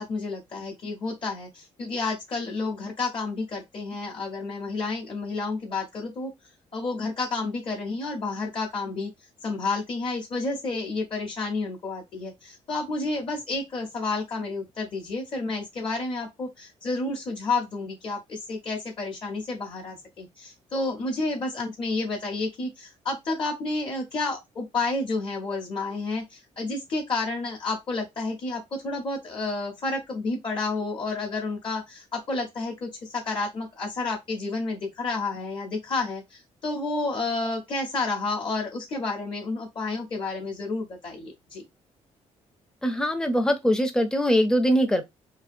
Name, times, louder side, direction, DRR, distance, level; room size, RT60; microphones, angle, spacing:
voice 1, 0.0-6.3 6.7-9.1 9.4-41.6, left 3 dB, 40° left, 0.7 m, -30 dB
voice 2, 42.8-45.0, equal, 5° left, 0.4 m, -22 dB
2.7 x 2.3 x 2.5 m
cardioid pair, 140°, 13 cm